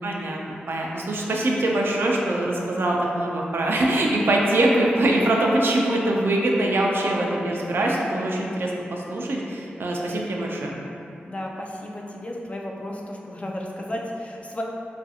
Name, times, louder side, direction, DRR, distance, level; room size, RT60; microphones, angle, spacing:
voice 1, 0.0-10.8, right 1 dB, 70° right, -2 dB, 0.3 m, -23 dB
voice 2, 11.3-14.6, left 1 dB, 30° left, -1 dB, 0.4 m, -33 dB
2.4 x 2.3 x 2.7 m, 2.6 s
cardioid pair, 45°, 4 cm